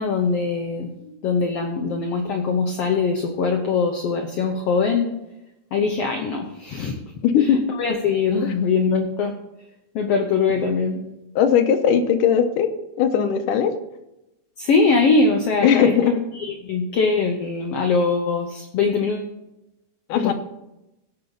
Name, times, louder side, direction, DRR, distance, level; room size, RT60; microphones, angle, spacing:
voice 1, 0.0-5.1 5.7-7.0 7.4-9.3 9.9-11.0 14.6-15.9 16.3-19.3 20.1-20.3, left 4 dB, 65° left, 3 dB, 1.6 m, -22 dB
voice 2, 7.2-7.6 8.4-8.5 11.4-12.7 13.0-13.7 15.6-16.2 20.1-20.3, left 8 dB, 90° left, 8 dB, 2.4 m, -18 dB
16.5 x 6.7 x 3.9 m, 0.92 s
omnidirectional pair, 3.7 m